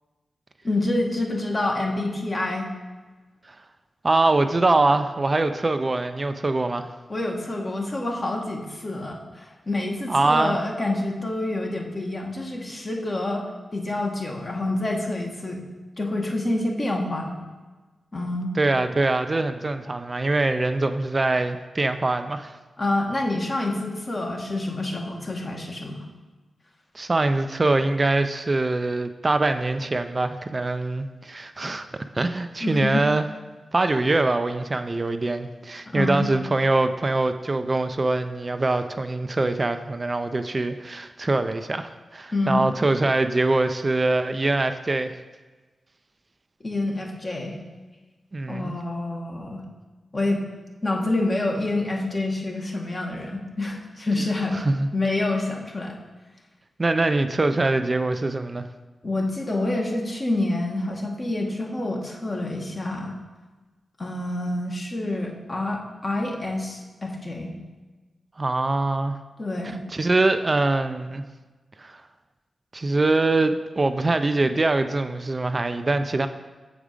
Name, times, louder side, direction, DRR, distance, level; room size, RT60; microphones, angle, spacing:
voice 1, 0.6-2.7 7.1-13.4 13.7-15.6 16.0-17.3 18.1-18.5 22.8-26.0 32.6-33.0 35.9-36.3 42.3-42.7 46.6-47.6 48.5-49.6 50.1-50.4 50.8-54.6 54.9-55.9 59.0-63.1 64.0-67.6 69.4-69.8, left 2 dB, 40° left, 0 dB, 1.4 m, -27 dB
voice 2, 4.0-6.9 10.1-10.6 18.6-22.5 26.9-31.9 32.1-33.3 33.7-45.1 48.3-48.7 54.6-54.9 56.8-58.7 68.4-69.2 69.9-71.2 71.8-72.0 72.7-76.3, right 2 dB, 40° right, 8 dB, 0.4 m, -23 dB
7.1 x 5.0 x 5.0 m, 1.3 s
cardioid pair, 45°, 0 cm